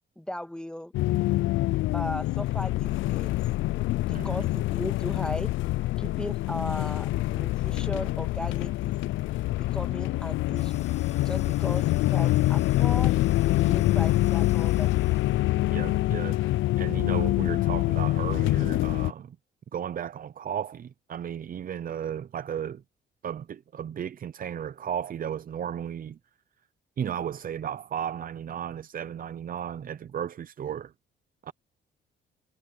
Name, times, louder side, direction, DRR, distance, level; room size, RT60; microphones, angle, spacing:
voice 1, 0.2-0.9 1.9-3.4 4.0-5.5 6.0-8.9 9.5-10.9 11.2-13.1 13.4-14.9, left 1 dB, 5° left, 1.8 m, -37 dB
sound 1, 0.9-19.1, left 17 dB, 80° left, 0.4 m, -25 dB
voice 2, 4.1-4.5 15.7-19.4 19.7-22.8 23.2-26.2 27.0-30.9 31.4-31.5, right 9 dB, 45° right, 0.6 m, -34 dB
sound 2, 10.6-15.6, left 6 dB, 35° left, 0.8 m, -50 dB
sound 3, 11.1-11.7, right 12 dB, 90° right, 2.1 m, -60 dB
cardioid pair, 90°, 20 cm